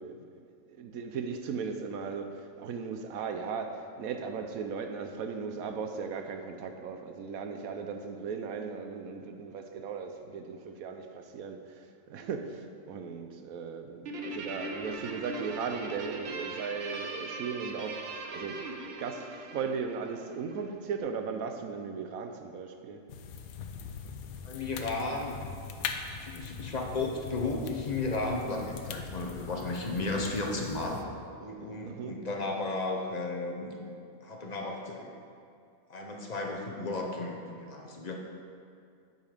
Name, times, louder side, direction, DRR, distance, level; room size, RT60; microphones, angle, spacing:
voice 1, 0.0-18.6 19.0-23.0 31.8-32.2, right 5 dB, 80° right, 6 dB, 1.1 m, -37 dB
Guitar, 14.1-20.7, right 2 dB, 55° right, 0.8 m, -40 dB
sound 1, 23.1-31.0, left 6 dB, 90° left, 1.1 m, -41 dB
voice 2, 24.4-25.4 26.1-31.0 31.4-35.1 35.9-38.1, left 2 dB, 35° left, 1 dB, 0.8 m, -34 dB
9.1 x 5.5 x 5.1 m, 2.4 s
omnidirectional pair, 1.5 m